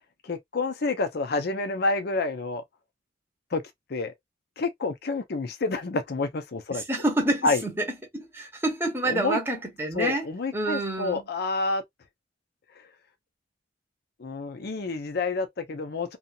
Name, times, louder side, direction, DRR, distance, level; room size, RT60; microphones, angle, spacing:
voice 1, 0.2-2.6 3.5-3.6 3.9-4.1 4.6-6.8 7.4-7.6 9.0-9.4 9.9-11.8 14.2-16.2, left 3 dB, 55° left, 0.6 m, -28 dB
voice 2, 6.7-7.8 8.1-10.3 10.5-11.2, right 2 dB, 15° right, 0.9 m, -28 dB
2.7 x 2.4 x 2.5 m
head